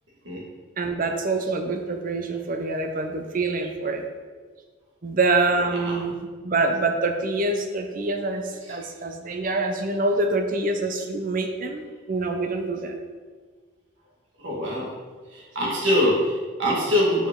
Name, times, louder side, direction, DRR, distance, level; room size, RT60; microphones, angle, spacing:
voice 1, 0.8-4.0 5.0-13.0, right 3 dB, 40° right, 5 dB, 0.5 m, -26 dB
voice 2, 14.4-14.9 15.3-17.3, left 1 dB, 65° right, -4 dB, 1.7 m, -23 dB
5.4 x 5.0 x 3.7 m, 1.5 s
head